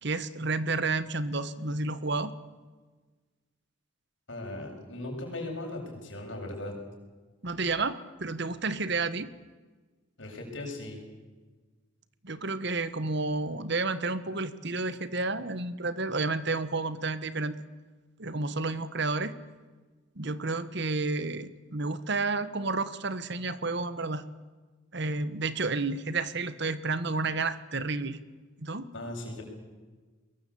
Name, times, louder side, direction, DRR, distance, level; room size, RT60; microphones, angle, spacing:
voice 1, 0.0-2.3 7.4-9.3 12.2-17.6 18.2-19.3 20.1-24.2 24.9-28.2 28.6-28.9, right 3 dB, 55° right, 14 dB, 1.4 m, -31 dB
voice 2, 4.3-6.8 10.2-11.0 28.9-29.4, left 1 dB, 60° left, 1 dB, 7.4 m, -38 dB
23.0 x 21.0 x 8.6 m, 1.3 s
head